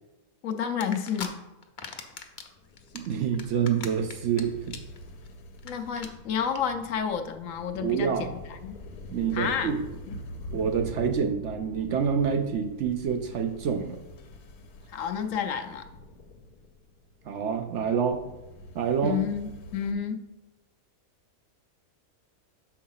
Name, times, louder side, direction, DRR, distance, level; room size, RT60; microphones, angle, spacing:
voice 1, 0.4-1.3 5.6-8.8 9.3-9.7 14.9-15.9 19.0-20.2, left 7 dB, 70° left, 7 dB, 0.9 m, -30 dB
sound 1, 0.8-1.3 1.6-2.5 2.8-4.4 4.7-5.0 5.3-5.4 5.6-5.7 6.0-6.1 6.4-6.6, left 5 dB, 45° left, 0.7 m, -39 dB
sound 2, 2.3-19.9, left 1 dB, 90° left, 1.3 m, -45 dB
voice 2, 3.0-4.7 7.8-8.3 9.1-9.8 10.5-14.0 17.3-18.2 18.7-19.2, right 7 dB, 65° right, 5 dB, 0.8 m, -27 dB
6.2 x 4.6 x 5.5 m, 1.1 s
omnidirectional pair, 1.5 m